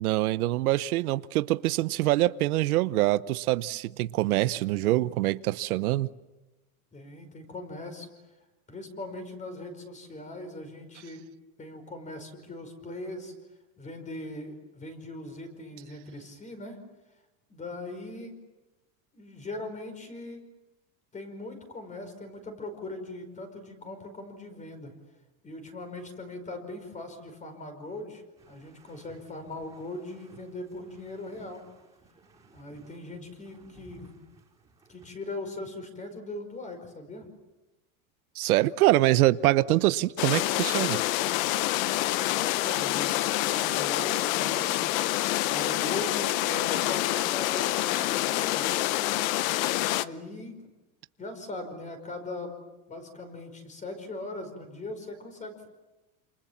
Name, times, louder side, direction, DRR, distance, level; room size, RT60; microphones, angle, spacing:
voice 1, 0.0-6.1 38.3-41.0, right 16 dB, 90° right, 1.0 m, -24 dB
voice 2, 6.9-8.1 8.7-11.2 11.6-13.3 13.8-16.8 17.5-18.4 19.1-20.4 21.1-24.9 25.4-31.6 32.5-34.2 34.9-37.3 42.4-44.9 45.4-48.9 49.8-50.6 51.2-52.5 52.9-55.7, left 2 dB, 15° left, 5.2 m, -40 dB
sound 1, 28.4-35.1, right 4 dB, 5° right, 5.2 m, -58 dB
sound 2, 40.2-50.1, left 16 dB, 70° left, 1.0 m, -27 dB
28.5 x 27.5 x 7.3 m
supercardioid pair, 150°, 43 cm